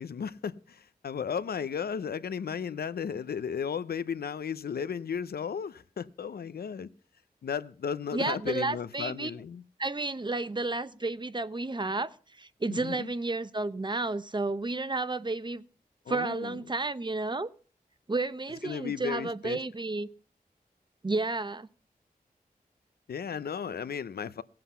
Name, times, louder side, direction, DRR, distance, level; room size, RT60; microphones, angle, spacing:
voice 1, 0.0-6.9 7.4-9.6 12.7-13.1 16.1-16.6 18.6-19.6 23.1-24.4, left 7 dB, 90° left, 0.6 m, -34 dB
voice 2, 8.1-9.3 9.8-15.6 16.1-17.5 18.1-20.1 21.0-21.7, right 3 dB, 30° right, 0.8 m, -32 dB
17.5 x 7.8 x 5.5 m
wide cardioid pair, 65°, 16 cm